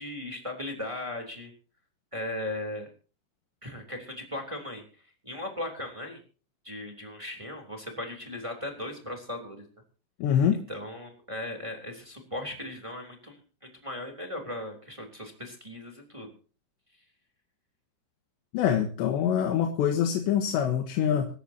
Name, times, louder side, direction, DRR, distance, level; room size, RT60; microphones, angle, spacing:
voice 1, 0.0-1.5 2.1-2.9 3.6-4.8 5.2-6.2 6.6-9.7 10.7-16.3, left 1 dB, 10° right, 2 dB, 2.4 m, -37 dB
voice 2, 10.2-10.6 18.5-21.3, left 9 dB, 70° left, 4 dB, 3.4 m, -25 dB
25.5 x 13.0 x 2.9 m, 0.38 s
omnidirectional pair, 5.6 m